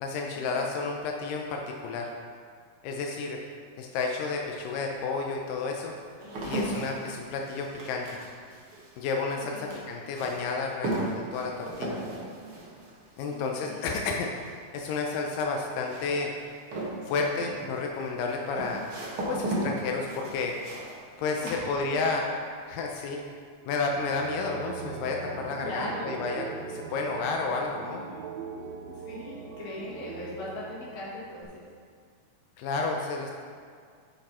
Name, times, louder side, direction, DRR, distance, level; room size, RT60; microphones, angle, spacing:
voice 1, 0.0-2.1 2.8-3.4 3.8-5.9 6.4-8.2 9.0-12.0 13.2-14.3 14.7-16.3 17.1-18.8 19.3-20.5 21.2-22.2 22.7-23.2 23.7-28.0 32.6-33.3, left 4 dB, 85° left, 1 dB, 1.9 m, -31 dB
sound 1, 5.2-22.3 22.6-23.2, right 1 dB, 60° right, 1.4 m, -37 dB
voice 2, 9.3-9.8 13.3-13.9 18.5-18.8 21.4-22.0 25.6-26.1 28.9-31.5, left 1 dB, 50° left, -7 dB, 2.6 m, -40 dB
sound 2, 23.9-31.4, right 6 dB, 80° right, 2.3 m, -41 dB
8.7 x 5.4 x 4.3 m, 2.1 s
omnidirectional pair, 4.6 m